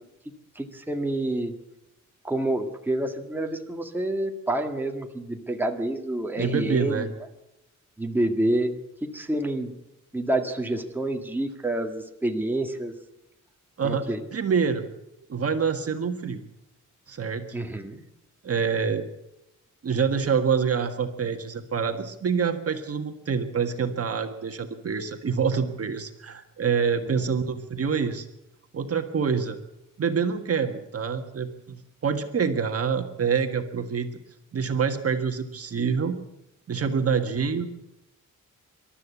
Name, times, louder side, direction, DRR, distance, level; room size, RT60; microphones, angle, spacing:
voice 1, 0.6-1.5 2.2-7.1 8.0-9.8 10.1-12.9 13.8-14.2 17.5-18.0 27.0-27.3, right 1 dB, 5° right, 3 dB, 1.9 m, -28 dB
voice 2, 6.4-7.1 13.8-14.9 15.3-16.4 17.1-17.4 18.4-19.1 19.8-28.3 28.7-29.6 30.0-34.1 34.5-36.2 36.7-37.7, right 6 dB, 45° right, 6 dB, 1.6 m, -26 dB
26.5 x 13.0 x 8.4 m, 0.88 s
wide cardioid pair, 135°, 32 cm